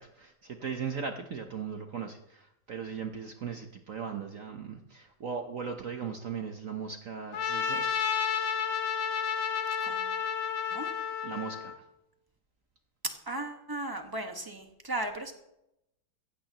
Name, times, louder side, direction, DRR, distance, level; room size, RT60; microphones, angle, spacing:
voice 1, 0.0-8.1 11.2-11.8, right 6 dB, 55° right, 5 dB, 1.0 m, -38 dB
Trumpet, 7.3-11.8, left 7 dB, 70° left, 1.8 m, -31 dB
voice 2, 9.8-10.1 10.7-10.9 13.0-15.3, right 2 dB, 15° right, 4 dB, 1.1 m, -36 dB
15.5 x 15.5 x 2.9 m, 0.83 s
omnidirectional pair, 2.2 m